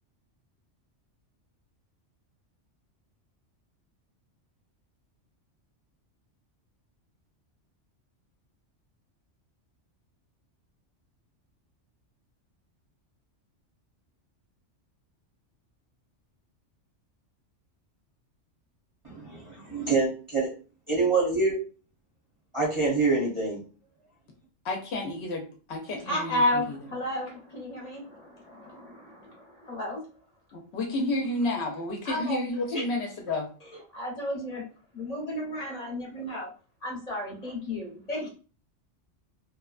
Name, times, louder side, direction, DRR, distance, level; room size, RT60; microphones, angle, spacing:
voice 1, 19.0-20.5 20.9-21.6 22.5-23.6, right 3 dB, 30° right, -4 dB, 0.7 m, -26 dB
voice 2, 24.6-25.4 25.7-26.6 30.5-33.5, left 2 dB, 65° left, 2 dB, 0.9 m, -31 dB
voice 3, 26.0-30.0 32.0-32.4 32.7-32.8 33.6-34.6 34.9-36.5 36.8-38.3, left 1 dB, 35° left, -2 dB, 0.8 m, -32 dB
3.0 x 2.2 x 2.4 m, 0.37 s
omnidirectional pair, 1.2 m